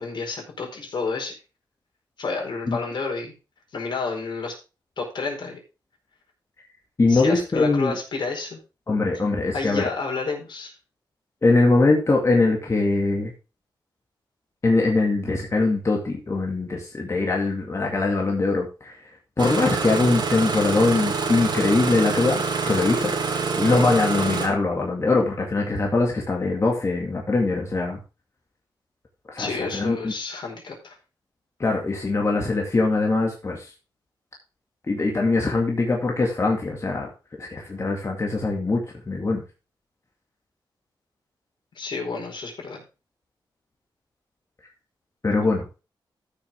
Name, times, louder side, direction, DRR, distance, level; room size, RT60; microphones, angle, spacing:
voice 1, 0.0-1.3 2.2-3.3 3.7-4.5 5.0-5.6 7.1-8.6 9.5-10.7 29.4-30.9 41.7-42.8, left 4 dB, 65° left, 0 dB, 4.6 m, -30 dB
voice 2, 7.0-8.0 8.9-9.8 11.4-13.3 14.6-19.0 19.4-23.1 23.6-28.0 29.3-30.1 31.6-33.7 34.9-37.1 37.4-39.4 45.2-45.6, left 3 dB, 35° left, 0 dB, 2.1 m, -22 dB
Engine starting, 19.4-24.5, right 4 dB, 60° right, 2.3 m, -26 dB
14.0 x 6.4 x 3.5 m, 0.31 s
wide cardioid pair, 95°, 8 cm